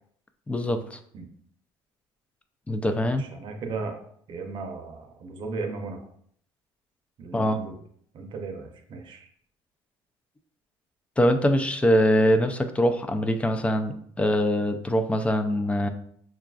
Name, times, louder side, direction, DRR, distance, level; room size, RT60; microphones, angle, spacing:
voice 1, 0.5-1.0 2.7-3.2 7.3-7.6 11.2-15.9, equal, 10° left, 7 dB, 0.4 m, -23 dB
voice 2, 3.0-3.9 4.3-6.0 7.2-7.8 8.1-9.3, right 4 dB, 50° right, 4 dB, 0.7 m, -36 dB
5.7 x 2.4 x 2.3 m, 0.65 s
cardioid pair, 115°, 10 cm